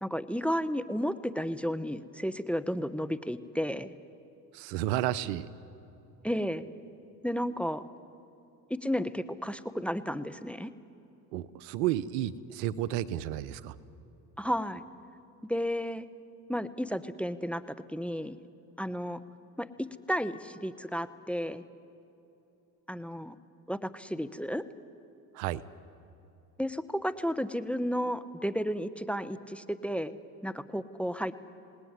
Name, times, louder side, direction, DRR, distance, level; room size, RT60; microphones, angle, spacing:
voice 1, 0.0-3.9 6.2-6.6 7.2-7.8 8.7-10.7 14.4-14.8 15.5-16.1 16.5-18.4 18.8-19.2 19.6-21.6 22.9-23.4 23.7-24.6 26.6-30.2 30.4-31.3, equal, 5° left, 13 dB, 0.9 m, -32 dB
voice 2, 4.5-5.5 11.3-13.7 25.3-25.6, right 13 dB, 75° right, 17 dB, 1.0 m, -31 dB
27.0 x 18.5 x 9.7 m, 2.9 s
supercardioid pair, 80°, 47 cm